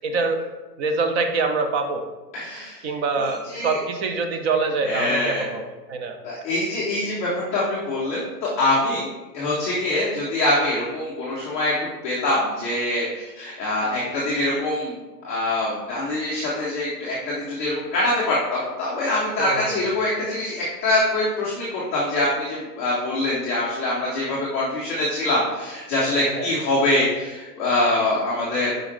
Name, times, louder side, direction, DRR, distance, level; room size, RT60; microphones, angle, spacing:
voice 1, 0.0-0.4 0.8-2.1 2.8-6.4 19.4-19.8 26.3-26.5, right 4 dB, 40° right, 6 dB, 0.7 m, -25 dB
voice 2, 2.3-2.8 3.2-3.8 4.8-5.5 6.2-9.1 9.3-11.7 12.0-14.9 15.2-28.8, left 1 dB, 10° left, -12 dB, 0.3 m, -24 dB
6.0 x 5.0 x 3.1 m, 1.2 s
hypercardioid pair, 130°, 50 cm